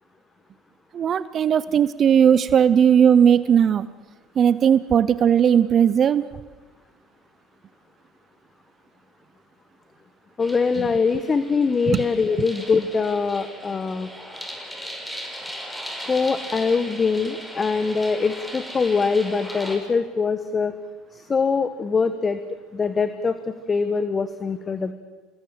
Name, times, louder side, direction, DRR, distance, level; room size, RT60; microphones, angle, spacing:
voice 1, 0.9-3.9 4.4-6.2 11.9-12.0, right 8 dB, 45° right, 16 dB, 0.8 m, -17 dB
voice 2, 10.4-14.1 16.0-20.7 21.1-22.4 22.7-23.3 23.7-24.9, left 5 dB, 30° left, 11 dB, 1.3 m, -23 dB
sound 1, 10.4-19.8, equal, 5° left, 5.6 m, -37 dB
26.5 x 20.0 x 7.8 m, 1.3 s
supercardioid pair, 85°, 0 cm